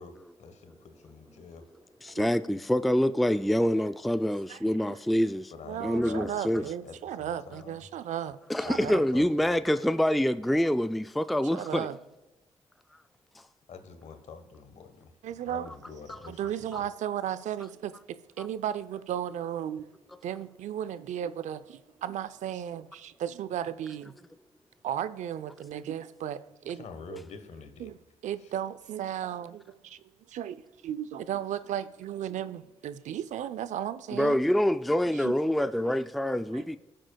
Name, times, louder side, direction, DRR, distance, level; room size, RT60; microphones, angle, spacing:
voice 1, 0.0-1.6 5.5-7.8 8.6-9.5 13.7-16.8 26.7-27.9 28.4-28.5 29.1-29.3, left 5 dB, 60° left, 1.3 m, -47 dB
voice 2, 2.0-5.5 5.8-6.6 8.5-11.9 16.7-16.8 18.4-18.5 34.1-36.8, equal, ahead, 0.4 m, -26 dB
voice 3, 5.7-8.4 8.7-9.0 11.5-12.0 15.2-15.7 16.3-17.9 18.4-19.9 20.2-24.1 24.8-27.2 27.8-28.0 28.2-34.4 35.1-35.3 35.9-36.0 36.3-36.8, right 10 dB, 70° right, 0.5 m, -35 dB
17.5 x 7.6 x 2.3 m
hypercardioid pair, 50°, 13 cm